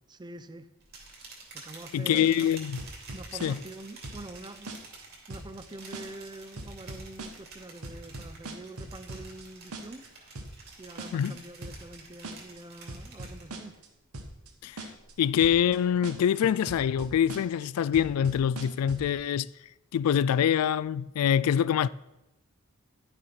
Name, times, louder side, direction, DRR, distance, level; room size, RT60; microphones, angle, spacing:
voice 1, 0.1-0.7 1.5-2.5 3.1-10.1 10.8-13.8, right 2 dB, 20° right, 0.5 m, -45 dB
sound 1, 0.8-13.8 14.1-14.5 14.9-16.8, right 3 dB, 45° right, 2.7 m, -50 dB
voice 2, 1.9-2.8 3.4-3.6 11.1-11.3 14.6-14.9 15.2-19.5 19.9-21.9, left 9 dB, 85° left, 0.3 m, -25 dB
sound 2, 2.1-2.5 2.8-3.8 4.0-4.4 4.7-5.0 5.3-5.7 5.9-6.3 6.6-7.6 7.8-9.5 9.7-10.1 10.4-10.7 11.0-11.3 11.6-12.0 12.2-12.6 12.9-13.9 14.1-14.5 14.8-15.1 15.4-15.8 16.0-16.4 16.7-17.7 17.9-19.1, right 2 dB, 90° right, 1.3 m, -40 dB
11.0 x 6.7 x 5.8 m
head